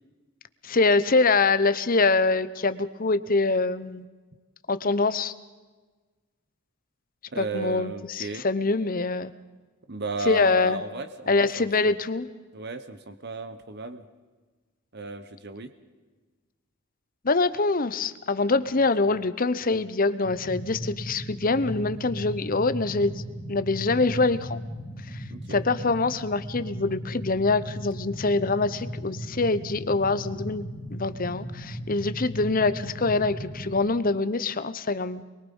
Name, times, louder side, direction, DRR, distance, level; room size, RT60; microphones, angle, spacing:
voice 1, 0.6-4.0 4.7-5.3 7.4-9.3 10.3-10.8 11.3-12.3 17.2-23.2 23.5-24.6 25.1-25.2 25.5-30.6 30.9-35.2, left 3 dB, 40° left, 13 dB, 0.9 m, -24 dB
voice 2, 7.3-8.4 9.9-11.9 12.5-14.1 14.9-15.7 25.3-25.6, right 2 dB, 55° right, 11 dB, 1.2 m, -34 dB
sound 1, 20.2-33.8, equal, 10° right, 4.3 m, -37 dB
25.0 x 22.5 x 5.5 m, 1.3 s
head